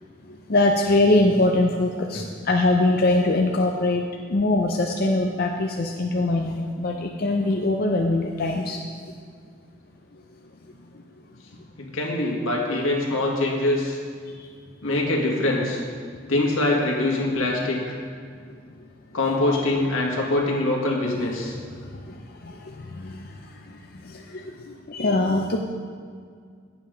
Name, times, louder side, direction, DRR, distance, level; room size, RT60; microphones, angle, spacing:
voice 1, 0.5-8.8 14.4-14.5 21.8-22.2 22.4-23.3 24.0-25.6, left 2 dB, 45° left, 1 dB, 0.5 m, -23 dB
voice 2, 11.8-14.0 14.8-15.8 16.3-18.0 19.1-21.6, left 2 dB, 80° left, -2 dB, 2.0 m, -23 dB
10.5 x 8.1 x 5.1 m, 2.1 s
head